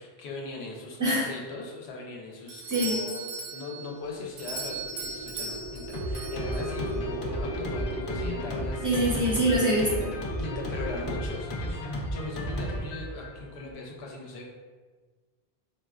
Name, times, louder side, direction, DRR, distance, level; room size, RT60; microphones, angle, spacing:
voice 1, 0.0-9.2 10.4-14.4, left 2 dB, 90° left, 0 dB, 0.9 m, -39 dB
Doorbell, 2.5-7.0, right 3 dB, 90° right, 0.8 m, -38 dB
sound 1, 4.1-11.2, equal, 20° left, 0.6 m, -37 dB
Drum kit, 5.9-13.7, equal, 60° left, 0.7 m, -34 dB
voice 2, 8.8-10.1, right 1 dB, 25° right, -5 dB, 0.5 m, -24 dB
4.1 x 2.1 x 2.3 m, 1.4 s
omnidirectional pair, 1.0 m